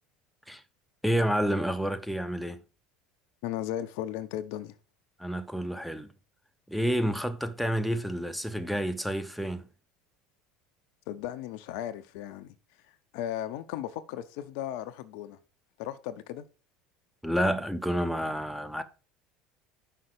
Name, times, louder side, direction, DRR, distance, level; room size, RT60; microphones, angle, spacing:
voice 1, 1.0-2.6 5.2-6.1 6.7-9.7 17.2-18.8, equal, ahead, 0.9 m, -29 dB
voice 2, 3.4-4.7 11.1-12.5 13.1-15.4 15.8-16.4, left 11 dB, 65° left, 0.6 m, -36 dB
5.8 x 5.6 x 6.6 m
hypercardioid pair, 75°, 0 cm